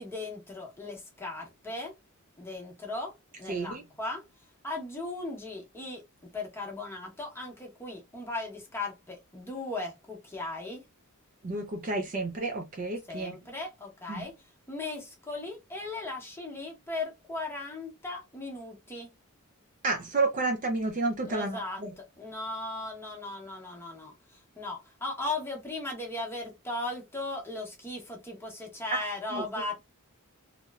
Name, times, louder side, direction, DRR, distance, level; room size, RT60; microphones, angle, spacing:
voice 1, 0.0-1.9 2.4-4.3 4.6-6.0 6.3-10.8 13.1-19.1 21.3-29.8, left 2 dB, 10° left, 0.8 m, -37 dB
voice 2, 3.5-3.8 11.4-13.4 14.1-14.3 19.8-21.9 28.9-29.0 29.3-29.4, right 3 dB, 35° right, 0.4 m, -30 dB
2.8 x 2.0 x 2.3 m
head